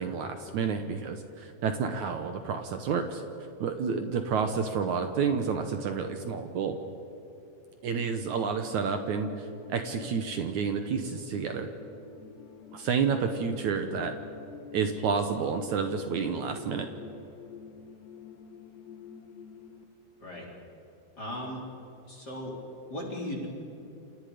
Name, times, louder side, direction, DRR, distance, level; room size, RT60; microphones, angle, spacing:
voice 1, 0.0-3.2 3.6-6.8 7.8-11.7 12.7-14.1 14.7-16.9, right 6 dB, 70° right, 6 dB, 1.8 m, -30 dB
sound 1, 8.0-19.8, left 6 dB, 80° left, 3.3 m, -48 dB
voice 2, 21.2-21.6 22.1-22.5 22.9-23.5, left 1 dB, 25° left, -2 dB, 4.1 m, -36 dB
28.5 x 28.0 x 5.1 m, 3.0 s
omnidirectional pair, 5.0 m